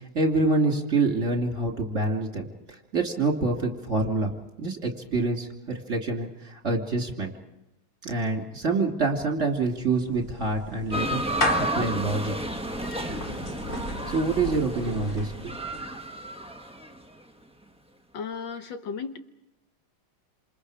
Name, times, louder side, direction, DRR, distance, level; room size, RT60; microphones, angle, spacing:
voice 1, 0.0-2.5 2.9-4.3 4.6-7.3 8.0-11.2 11.7-12.3 14.1-15.5, right 3 dB, 35° right, 1 dB, 3.2 m, -26 dB
Clapping / Meow, 9.5-15.9, left 2 dB, 25° left, 2.1 m, -35 dB
sound 1, 10.9-17.0, right 1 dB, 5° right, 0.6 m, -32 dB
voice 2, 18.1-19.2, left 6 dB, 65° left, 7 dB, 1.7 m, -34 dB
28.0 x 27.5 x 5.0 m, 0.89 s
omnidirectional pair, 2.2 m